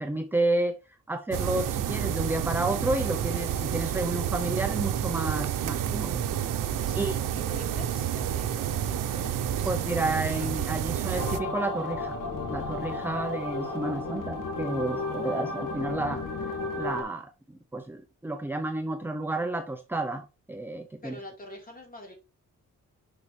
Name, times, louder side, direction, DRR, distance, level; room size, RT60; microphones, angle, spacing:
voice 1, 0.0-6.2 7.0-7.2 9.6-12.2 12.5-21.1, right 2 dB, 5° right, 0.6 m, -31 dB
sound 1, 1.3-11.4, right 10 dB, 85° right, 0.8 m, -29 dB
voice 2, 6.8-9.7 21.0-22.1, left 1 dB, 25° left, 3.9 m, -46 dB
sound 2, 11.1-17.0, left 3 dB, 80° left, 2.5 m, -33 dB
7.0 x 6.6 x 3.3 m
cardioid pair, 95°, 32 cm